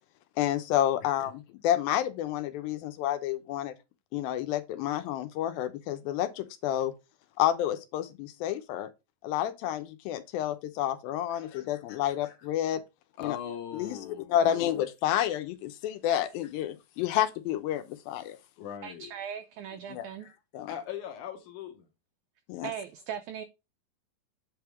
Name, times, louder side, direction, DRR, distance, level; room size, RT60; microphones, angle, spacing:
voice 1, 0.4-3.7 4.1-6.9 7.4-8.9 9.2-12.8 13.2-13.4 13.7-18.4 19.9-20.1 20.5-20.7 22.5-22.7, left 11 dB, 85° left, 2.6 m, -30 dB
voice 2, 11.3-12.3 13.2-14.6 18.6-19.1 20.2-20.3 20.6-21.9, left 9 dB, 70° left, 2.2 m, -41 dB
voice 3, 18.8-20.3 22.6-23.5, right 8 dB, 85° right, 1.7 m, -39 dB
8.4 x 3.5 x 4.6 m
omnidirectional pair, 4.1 m